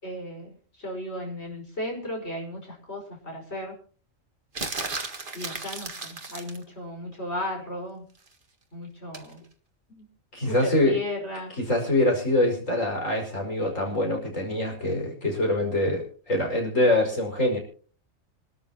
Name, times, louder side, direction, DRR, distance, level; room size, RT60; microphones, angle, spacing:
voice 1, 0.0-3.7 5.3-8.0 8.7-9.4 9.9-10.1 10.5-11.5, left 1 dB, 50° left, 1 dB, 5.7 m, -35 dB
sound 1, 4.6-6.6 9.1-9.3, right 3 dB, 40° right, 2.0 m, -34 dB
voice 2, 10.3-11.0 11.6-17.6, left 1 dB, 70° left, 0 dB, 6.1 m, -24 dB
26.0 x 13.0 x 2.9 m, 0.42 s
omnidirectional pair, 1.4 m